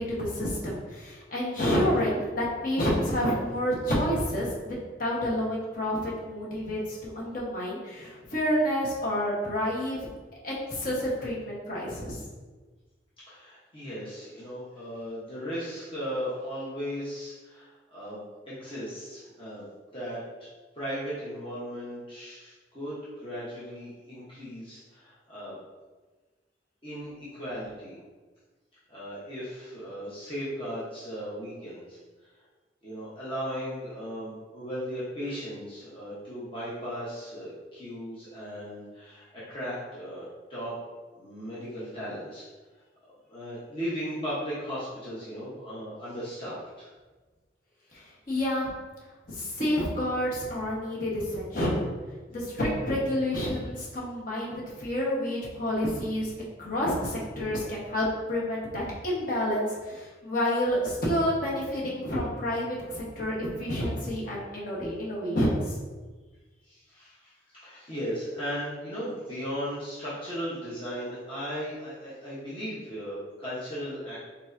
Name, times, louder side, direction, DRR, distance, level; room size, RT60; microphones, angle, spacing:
voice 1, 0.0-10.0 10.4-12.2 47.9-48.7 49.3-51.9 52.3-56.3 56.6-65.7, equal, 45° left, -6 dB, 1.2 m, -29 dB
voice 2, 13.3-19.7 19.9-20.5 20.7-25.6 26.8-28.0 28.9-32.0 32.8-40.8 41.1-42.4 43.3-46.9 66.6-74.2, equal, 30° left, -9 dB, 1.0 m, -37 dB
4.6 x 4.1 x 2.6 m, 1.3 s
head